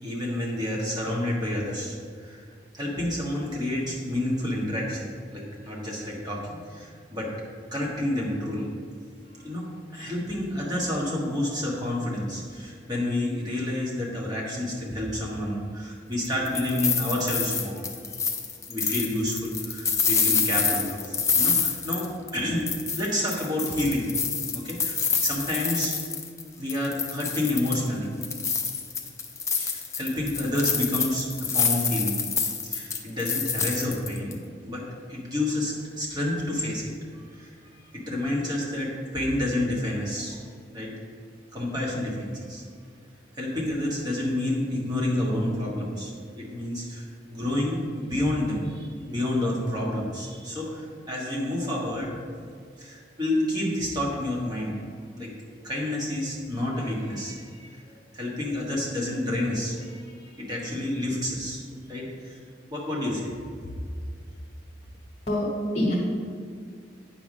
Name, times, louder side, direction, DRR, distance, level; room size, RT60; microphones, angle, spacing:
voice 1, 0.0-2.5 2.7-7.3 7.7-8.7 9.3-18.0 18.7-22.7 22.9-24.1 24.5-25.9 26.5-28.1 29.5-32.2 32.6-36.9 37.3-40.4 40.7-40.9 41.5-42.6 43.3-46.1 46.3-52.2 52.8-54.8 55.1-55.3 55.6-62.4 62.7-63.4, left 1 dB, 20° right, -4 dB, 1.5 m, -29 dB
sound 1, 16.2-22.4 22.7-26.4 26.7-27.9 28.2-34.3, left 5 dB, 15° left, 0.5 m, -27 dB
voice 2, 65.3-65.9, left 1 dB, 35° left, -5 dB, 1.1 m, -25 dB
8.9 x 3.6 x 6.1 m, 2.1 s
head